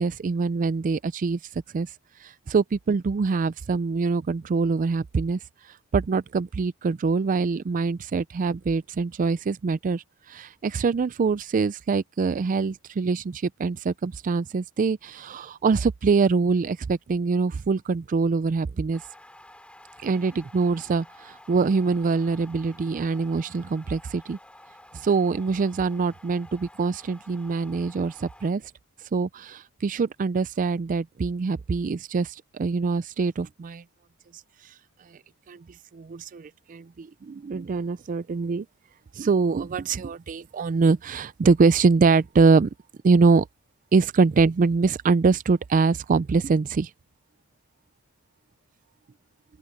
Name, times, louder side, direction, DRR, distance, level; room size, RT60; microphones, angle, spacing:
voice 1, 0.0-1.4 1.7-1.9 2.2-5.4 5.9-19.0 20.0-24.4 24.9-28.6 29.1-33.8 35.5-35.6 35.9-38.7 39.1-42.7 43.0-43.5 43.9-46.9, right 4 dB, 40° right, 0.4 m, -24 dB
sound 1, 18.9-28.5, left 1 dB, 5° left, 3.4 m, -51 dB
open air
head